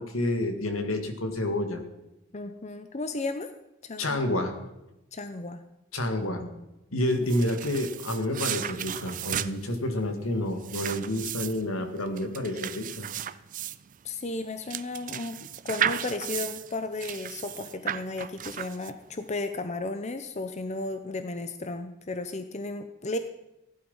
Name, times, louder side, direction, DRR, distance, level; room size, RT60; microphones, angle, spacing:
voice 1, 0.0-1.8 4.0-4.5 5.9-6.4 6.9-13.1, left 1 dB, 80° left, 6 dB, 2.0 m, -29 dB
voice 2, 2.3-3.5 3.8-4.2 5.1-5.6 6.2-6.7 14.0-15.4 15.6-23.2, left 2 dB, 35° left, 9 dB, 0.7 m, -34 dB
sound 1, 7.1-19.2, right 10 dB, 40° right, 0.5 m, -35 dB
15.5 x 11.0 x 5.6 m, 0.93 s
head